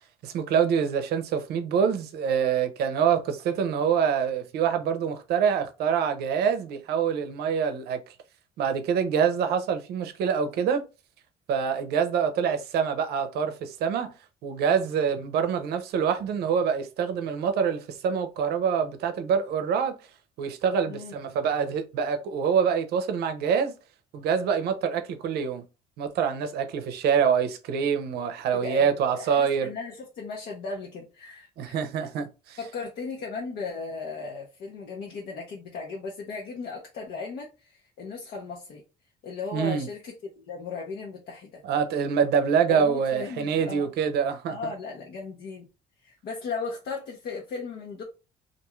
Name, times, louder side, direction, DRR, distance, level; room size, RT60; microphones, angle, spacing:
voice 1, 0.2-8.0 8.6-10.8 11.5-14.1 14.4-20.0 20.4-23.7 24.1-25.6 26.0-29.7 31.6-32.6 39.5-39.9 41.6-44.7, right 7 dB, 70° right, 0.6 m, -25 dB
voice 2, 28.5-32.1 32.6-38.8 39.2-41.6 42.7-43.9 44.5-45.7 46.0-48.0, left 4 dB, 65° left, 0.7 m, -36 dB
2.5 x 2.4 x 3.0 m
cardioid pair, 110°, 17 cm